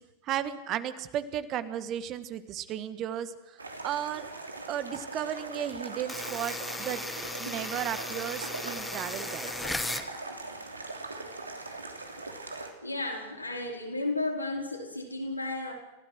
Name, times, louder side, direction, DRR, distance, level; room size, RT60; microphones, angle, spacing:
voice 1, 0.2-3.3 3.8-4.3 4.7-7.0 7.4-9.5, right 10 dB, 35° right, 13 dB, 1.6 m, -34 dB
sound 1, 3.6-12.7, right 3 dB, 80° right, 3.0 m, -41 dB
sound 2, 6.1-10.1, left 2 dB, 5° left, 1.5 m, -36 dB
voice 2, 12.8-15.7, left 2 dB, 85° left, 0 dB, 4.4 m, -33 dB
29.5 x 16.5 x 6.3 m, 1.0 s
figure-of-eight pair, 90°, 0 cm